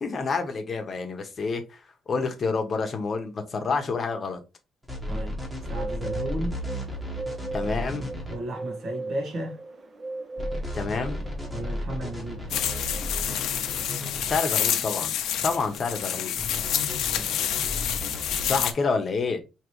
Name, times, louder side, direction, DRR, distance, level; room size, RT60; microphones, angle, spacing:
voice 1, 0.0-1.8 2.1-4.4 6.4-6.5 7.5-8.0 10.7-11.2 14.3-15.1 15.4-16.4 18.4-19.4, left 4 dB, 35° left, 0.9 m, -28 dB
sound 1, 4.8-8.4 10.4-14.4 16.4-18.7, left 1 dB, 5° right, 1.3 m, -34 dB
voice 2, 5.1-5.4 5.7-6.6 8.3-9.6 11.5-12.4 17.1-17.5, right 1 dB, 55° right, 1.3 m, -34 dB
Bird, 5.6-13.9, right 3 dB, 30° right, 0.7 m, -39 dB
sound 2, 12.5-18.7, left 10 dB, 90° left, 0.6 m, -28 dB
5.1 x 2.9 x 3.0 m
cardioid pair, 145°, 0 cm